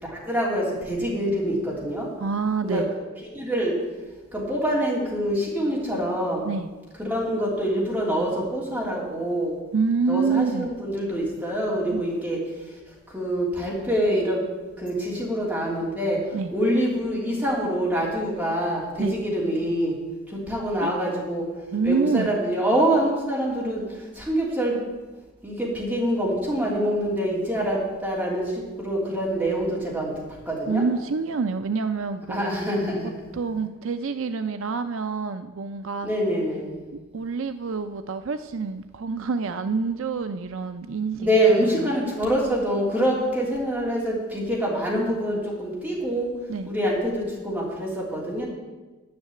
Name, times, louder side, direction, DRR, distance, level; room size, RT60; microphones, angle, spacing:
voice 1, 0.0-2.1 2.6-2.9 3.3-3.8 4.3-6.5 7.0-9.5 10.1-12.4 13.1-14.4 14.8-16.2 16.5-19.9 20.5-21.5 21.8-23.8 24.2-24.8 25.4-30.1 30.5-30.8 32.3-33.1 36.0-36.8 41.2-46.3 46.7-48.5, equal, 5° right, -5 dB, 3.1 m, -25 dB
voice 2, 2.2-2.9 6.4-6.7 9.7-10.7 11.9-12.0 16.3-16.5 19.0-19.1 20.8-20.9 21.7-22.3 30.7-32.6 33.3-36.1 37.1-41.3 41.8-41.9 46.5-46.7, right 4 dB, 65° right, 9 dB, 0.5 m, -27 dB
10.5 x 6.5 x 8.7 m, 1.2 s
head